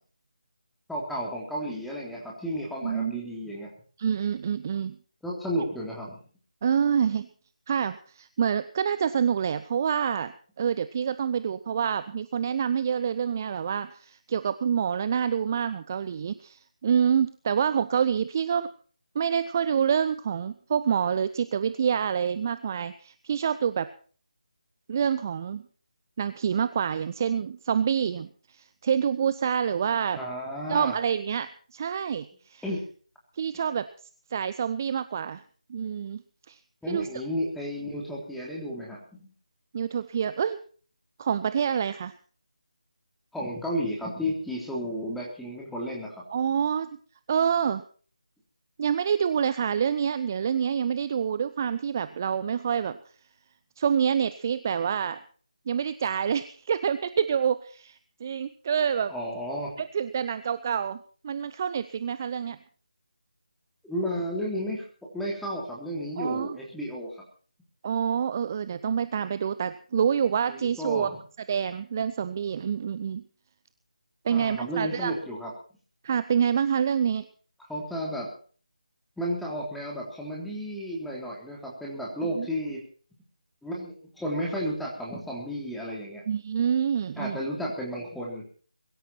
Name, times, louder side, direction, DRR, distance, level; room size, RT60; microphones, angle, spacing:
voice 1, 0.9-3.7 5.2-6.2 30.2-30.9 32.6-32.8 36.8-39.3 43.3-46.2 59.1-59.7 63.8-64.8 65.1-67.2 70.5-71.2 74.3-75.5 77.7-78.3 79.2-82.8 83.6-86.2 87.2-88.4, equal, ahead, -4 dB, 3.6 m, -32 dB
voice 2, 2.8-3.2 4.0-5.0 6.6-7.3 7.7-10.3 10.6-18.7 19.1-23.9 24.9-25.6 26.2-30.2 30.7-32.6 33.4-33.9 34.3-35.4 35.7-36.2 36.5-36.6 36.9-37.1 39.7-40.6 41.2-42.1 46.3-46.9 47.3-47.8 48.8-53.0 53.8-55.2 55.7-59.1 59.8-61.0 61.2-62.6 66.2-66.6 67.8-71.1 71.5-73.2 74.2-75.1 76.0-77.3 82.3-82.5 86.3-87.4, right 7 dB, 25° right, 13 dB, 0.7 m, -27 dB
23.0 x 13.0 x 4.4 m, 0.43 s
figure-of-eight pair, 155°, 4 cm